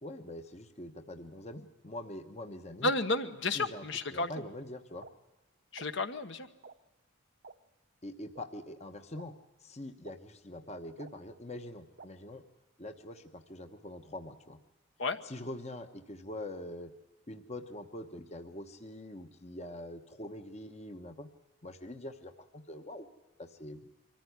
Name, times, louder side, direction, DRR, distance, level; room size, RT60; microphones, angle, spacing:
voice 1, 0.0-2.9 3.5-3.8 4.1-5.1 8.0-12.4 12.8-14.6 15.2-16.9 17.3-21.3 21.6-23.1 23.4-23.9, left 1 dB, 30° left, 7 dB, 1.1 m, -44 dB
voice 2, 2.8-4.3 5.7-6.5 15.0-15.2, left 2 dB, 55° left, 8 dB, 1.2 m, -32 dB
sound 1, 5.0-5.1 5.8-5.9 6.6-6.7 7.4-7.5 8.3-8.4 9.1-9.2 10.0-10.1 11.0-11.1 12.0-12.1, right 4 dB, 50° right, 0.9 m, -49 dB
23.5 x 15.0 x 9.5 m, 1.1 s
head